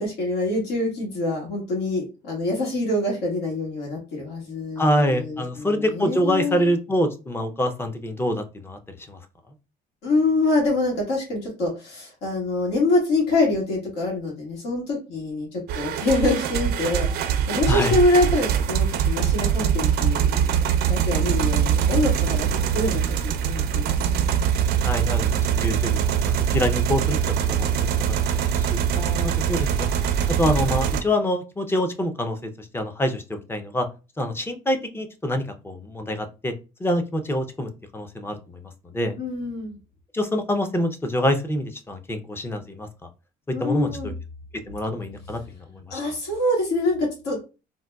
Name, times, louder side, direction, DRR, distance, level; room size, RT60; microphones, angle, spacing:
voice 1, 0.0-6.7 10.0-22.5 22.7-24.0 28.9-29.3 39.2-39.8 43.5-44.1 45.9-47.4, left 2 dB, 80° left, -3 dB, 1.4 m, -25 dB
voice 2, 4.8-8.8 9.1-9.2 17.7-17.9 24.8-28.8 29.2-29.9 30.4-33.9 34.2-36.5 36.8-39.1 40.1-42.9 43.6-44.1 44.7-46.0, left 1 dB, 15° left, 7 dB, 0.5 m, -26 dB
sound 1, 15.7-31.0, right 8 dB, 70° right, 0.5 m, -23 dB
3.7 x 2.2 x 2.3 m, 0.30 s
cardioid pair, 110°, 17 cm